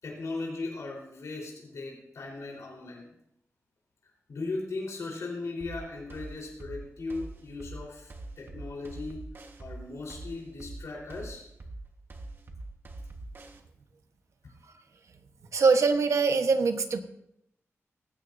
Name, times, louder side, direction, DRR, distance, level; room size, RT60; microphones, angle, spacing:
voice 1, 0.0-3.1 4.3-9.2 9.6-11.4, left 3 dB, 80° left, -2 dB, 4.0 m, -38 dB
sound 1, 5.6-13.6, right 2 dB, 45° right, 1.3 m, -43 dB
voice 2, 15.5-17.0, right 4 dB, 75° right, 7 dB, 1.1 m, -23 dB
18.0 x 15.5 x 2.7 m, 0.78 s
wide cardioid pair, 130°, 5 cm